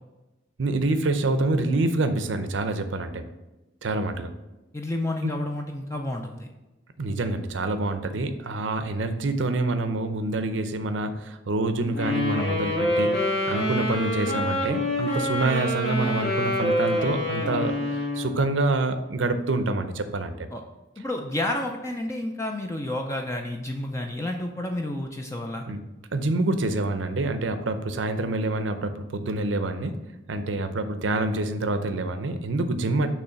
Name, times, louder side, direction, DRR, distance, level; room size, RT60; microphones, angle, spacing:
voice 1, 0.6-3.3 3.8-4.3 5.2-5.3 7.0-13.2 13.5-20.5 25.7-25.8 26.1-30.0 30.3-33.1, right 2 dB, 75° right, 9 dB, 0.6 m, -26 dB
voice 2, 4.7-6.5 20.5-20.6 21.0-25.7, left 1 dB, 15° left, 2 dB, 0.4 m, -30 dB
Wind instrument woodwind instrument, 11.9-18.4, left 1 dB, 60° left, 2.3 m, -26 dB
6.7 x 3.1 x 5.7 m, 1.0 s
head